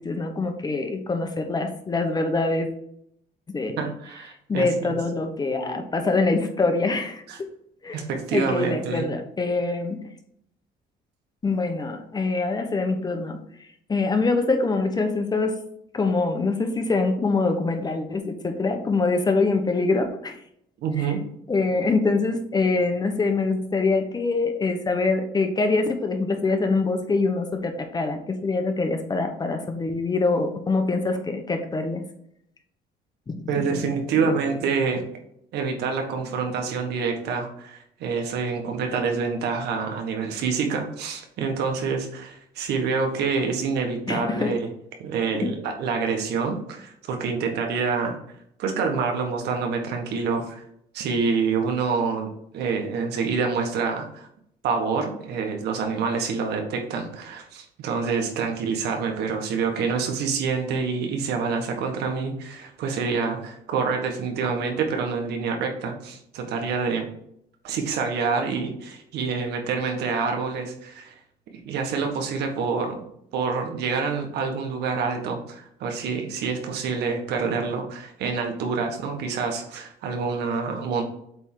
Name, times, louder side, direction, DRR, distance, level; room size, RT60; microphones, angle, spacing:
voice 1, 0.0-2.7 3.5-3.9 4.5-7.2 7.8-8.0 8.3-10.0 11.4-13.4 13.9-15.6 15.9-20.4 21.0-21.1 21.5-32.0 33.3-33.9 34.2-34.3 44.1-44.5 45.3-45.5 64.4-64.5, left 3 dB, 25° left, 5 dB, 1.1 m, -24 dB
voice 2, 3.8-5.0 7.3-7.4 7.9-9.1 20.8-21.2 33.5-35.0 35.5-44.6 45.0-48.2 48.6-50.6 50.9-52.3 52.5-54.3 54.6-67.1 67.6-71.1 71.7-73.1 73.3-81.0, right 5 dB, 75° right, 4 dB, 1.7 m, -27 dB
8.0 x 3.6 x 4.7 m, 0.71 s
cardioid pair, 110°, 17 cm